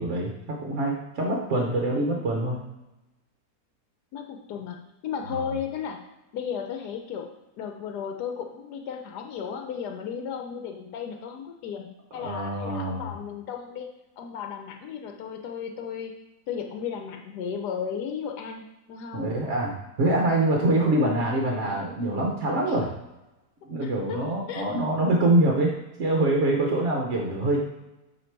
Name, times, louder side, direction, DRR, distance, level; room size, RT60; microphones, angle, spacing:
voice 1, 0.0-2.6 5.3-5.4 12.2-13.1 19.1-22.9 23.7-25.7 26.0-27.6, right 1 dB, 55° right, 0 dB, 1.0 m, -25 dB
voice 2, 4.1-6.0 6.3-7.3 7.6-13.9 14.2-16.1 16.5-18.6 18.9-19.2 22.7-22.8 23.8-24.2 24.5-24.7, left 7 dB, 90° left, 4 dB, 1.2 m, -34 dB
7.7 x 2.9 x 4.5 m, 0.97 s
omnidirectional pair, 1.7 m